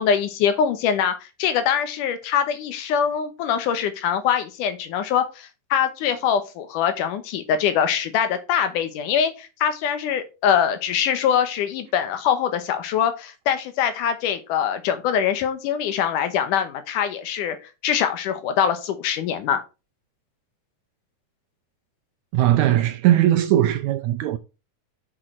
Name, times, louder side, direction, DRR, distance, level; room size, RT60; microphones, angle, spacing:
voice 1, 0.0-17.6 17.8-19.6, left 8 dB, 75° left, 2.4 m, -23 dB
voice 2, 22.3-24.4, right 12 dB, 80° right, 1.7 m, -19 dB
6.4 x 6.2 x 4.4 m
omnidirectional pair, 3.8 m